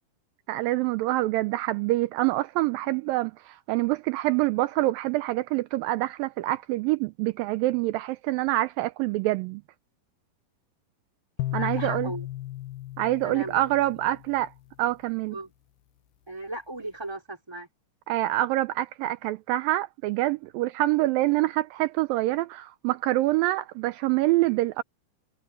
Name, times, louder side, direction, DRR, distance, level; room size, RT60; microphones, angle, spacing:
voice 1, 0.5-9.6 11.5-12.1 13.0-14.5 14.8-15.4 18.1-24.8, right 17 dB, 85° right, 2.0 m, -26 dB
sound 1, 11.4-14.7, left 16 dB, 75° left, 2.6 m, -35 dB
voice 2, 11.5-12.3 13.2-13.7 14.1-14.2 15.3-15.5 16.3-17.7, right 2 dB, 5° right, 3.4 m, -37 dB
omnidirectional pair, 4.6 m